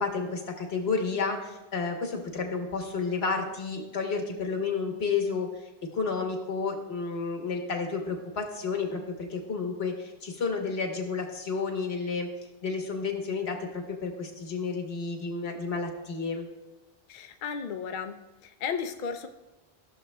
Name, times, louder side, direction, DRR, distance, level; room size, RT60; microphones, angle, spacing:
voice 1, 0.0-12.3 12.6-16.5, left 4 dB, 85° left, 3 dB, 1.4 m, -31 dB
voice 2, 17.1-18.2 18.4-19.3, left 6 dB, 60° left, 7 dB, 0.6 m, -34 dB
14.5 x 6.7 x 2.2 m, 1.0 s
omnidirectional pair, 1.0 m